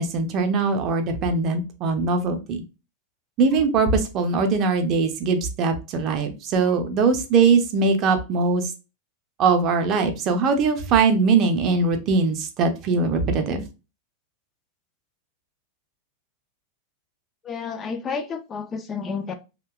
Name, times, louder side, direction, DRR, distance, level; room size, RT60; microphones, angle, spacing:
voice 1, 0.0-2.6 3.4-8.7 9.4-13.6, right 4 dB, 35° right, 0.5 m, -21 dB
voice 2, 17.4-19.3, left 5 dB, 25° left, 0.3 m, -30 dB
2.7 x 2.2 x 2.3 m
figure-of-eight pair, 90°, 0 cm